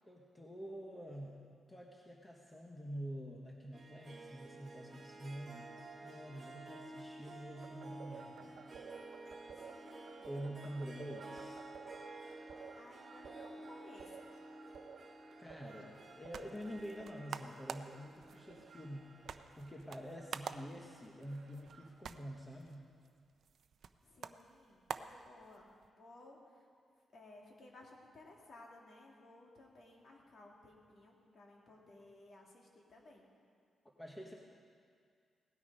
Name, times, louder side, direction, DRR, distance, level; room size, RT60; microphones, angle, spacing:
voice 1, 0.1-1.4 1.7-5.7 6.0-8.7 10.2-11.6 15.4-22.9 34.0-34.3, equal, 10° left, -1 dB, 1.1 m, -47 dB
Harp, 3.7-20.5, right 2 dB, 30° right, 1.5 m, -53 dB
sound 1, 7.6-22.4, right 6 dB, 85° right, 1.2 m, -56 dB
voice 2, 9.5-10.3 12.8-14.3 24.0-25.7 26.0-26.6 27.1-33.3, left 2 dB, 45° left, -1 dB, 2.4 m, -58 dB
sound 2, 15.9-25.9, right 7 dB, 60° right, 0.5 m, -49 dB
17.5 x 12.5 x 5.4 m, 2.2 s
wide cardioid pair, 170°, 0 cm